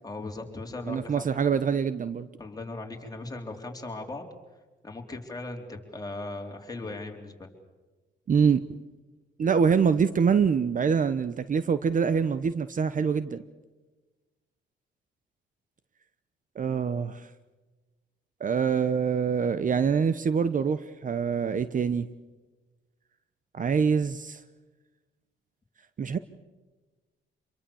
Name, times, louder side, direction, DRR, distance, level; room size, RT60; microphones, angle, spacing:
voice 1, 0.0-1.3 2.4-4.3 4.8-7.5, left 2 dB, 20° left, 2 dB, 3.9 m, -38 dB
voice 2, 0.9-2.3 8.3-8.6 9.4-13.4 16.6-17.2 18.4-22.1 23.5-24.4 26.0-26.2, right 6 dB, 40° right, 14 dB, 0.9 m, -25 dB
26.5 x 22.5 x 7.1 m, 1.2 s
cardioid pair, 90°, 20 cm